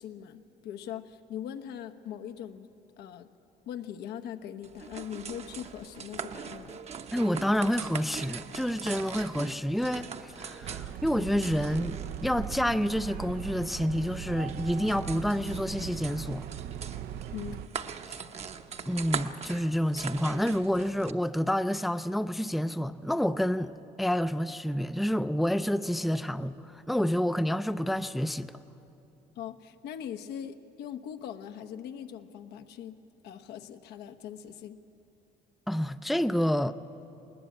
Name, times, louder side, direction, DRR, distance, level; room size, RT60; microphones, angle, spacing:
voice 1, 0.0-2.7 3.0-3.3 3.7-6.8 17.3-17.7 29.4-33.0 33.2-34.8, left 9 dB, 80° left, 1.0 m, -41 dB
sound 1, 4.6-21.1, right 6 dB, 40° right, 0.9 m, -41 dB
voice 2, 7.1-16.4 18.1-18.2 18.9-23.7 24.0-28.5 35.7-36.7, equal, ahead, 0.4 m, -29 dB
sound 2, 10.6-17.7, right 10 dB, 65° right, 0.6 m, -39 dB
20.5 x 19.0 x 8.6 m
cardioid pair, 110°, 17 cm